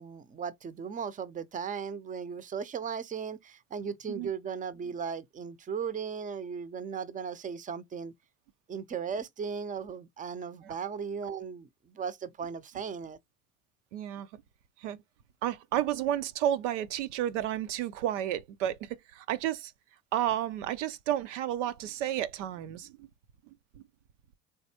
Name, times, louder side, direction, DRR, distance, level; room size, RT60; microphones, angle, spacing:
voice 1, 0.0-8.1 8.7-13.2, right 6 dB, 20° right, 0.6 m, -37 dB
voice 2, 13.9-14.3 14.8-15.0 15.4-19.7 20.1-23.1, right 11 dB, 70° right, 0.6 m, -31 dB
3.9 x 3.4 x 2.8 m
hypercardioid pair, 70°, 38 cm